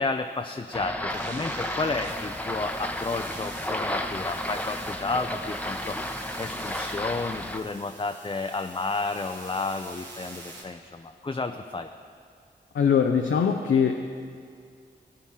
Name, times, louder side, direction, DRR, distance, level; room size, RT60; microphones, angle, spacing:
voice 1, 0.0-11.9, left 3 dB, 25° left, 5 dB, 0.5 m, -32 dB
sound 1, 0.7-7.6, left 1 dB, 10° left, 0.9 m, -33 dB
sound 2, 1.1-10.6, right 2 dB, 85° right, 2.2 m, -45 dB
voice 2, 12.7-13.9, left 7 dB, 85° left, 4 dB, 0.6 m, -21 dB
17.0 x 8.8 x 3.7 m, 2.2 s
cardioid pair, 40°, 19 cm